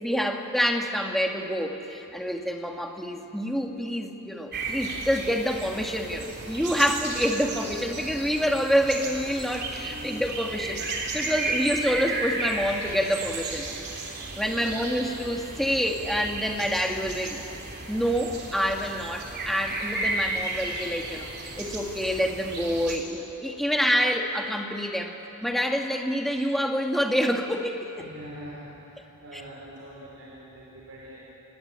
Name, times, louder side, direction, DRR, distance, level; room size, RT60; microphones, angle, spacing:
voice 1, 0.0-10.8 11.1-13.7 14.3-17.4 17.9-21.3 21.6-25.1 25.4-28.1 29.3-29.4, equal, ahead, 2 dB, 1.8 m, -27 dB
sound 1, 4.5-23.0, right 2 dB, 50° right, 3.2 m, -34 dB
voice 2, 14.2-14.7 28.0-28.6 29.2-31.2, equal, 70° right, -5 dB, 4.9 m, -44 dB
27.0 x 20.0 x 8.8 m, 2.9 s
head